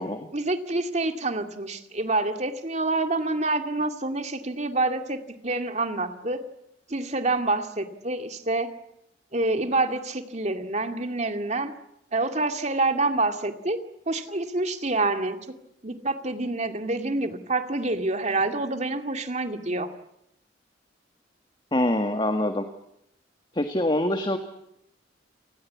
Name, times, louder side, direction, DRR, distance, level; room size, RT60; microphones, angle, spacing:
voice 1, 0.3-6.4 6.9-8.7 9.3-11.7 12.1-13.8 14.1-15.6 15.8-19.9, right 2 dB, 40° right, 7 dB, 2.3 m, -27 dB
voice 2, 21.7-22.7 23.5-24.4, left 1 dB, 25° left, 7 dB, 1.7 m, -24 dB
29.5 x 20.0 x 8.5 m, 0.81 s
head